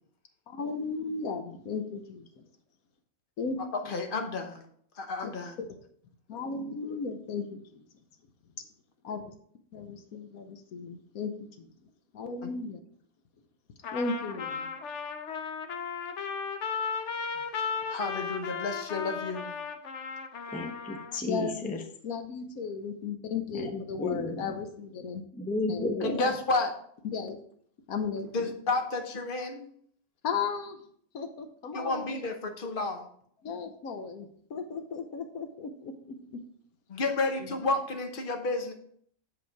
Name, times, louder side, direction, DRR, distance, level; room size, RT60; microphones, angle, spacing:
voice 1, 0.5-2.4 3.4-4.0 5.2-5.8 6.3-7.8 9.0-9.3 9.7-11.7 12.1-12.8 13.9-14.7 21.3-21.8 22.0-25.2 25.7-25.8 27.0-27.4 27.9-28.5 30.2-30.8 31.1-32.2 33.4-36.4 37.4-37.5, left 5 dB, 80° left, 7 dB, 1.3 m, -36 dB
voice 2, 3.9-4.7 5.0-5.6 12.4-12.5 17.9-19.5 26.0-26.7 28.3-29.7 31.7-33.1 36.9-38.7, left 3 dB, 40° left, 5 dB, 1.0 m, -31 dB
Trumpet, 13.8-21.2, left 6 dB, 60° left, 1.0 m, -35 dB
voice 3, 20.5-21.8 23.5-24.5 25.3-26.3, left 2 dB, 10° left, 5 dB, 0.5 m, -33 dB
7.3 x 5.1 x 4.6 m, 0.63 s
omnidirectional pair, 1.5 m